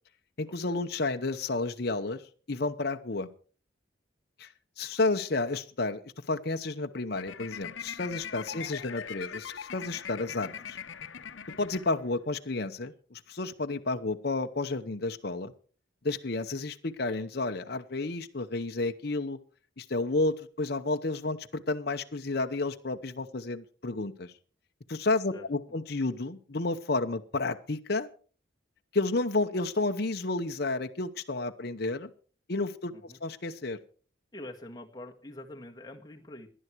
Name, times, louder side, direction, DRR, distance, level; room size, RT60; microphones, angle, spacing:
voice 1, 0.4-2.2 2.5-3.3 4.4-4.5 4.8-10.8 11.6-15.5 16.0-19.4 19.8-24.3 24.9-28.1 28.9-32.1 32.5-32.9 33.2-33.8, left 3 dB, 55° left, 6 dB, 0.9 m, -31 dB
sound 1, 7.1-12.4, left 7 dB, 85° left, 0.9 m, -41 dB
voice 2, 34.3-36.5, left 1 dB, 20° left, 2 dB, 1.7 m, -45 dB
18.0 x 11.0 x 4.6 m, 0.41 s
head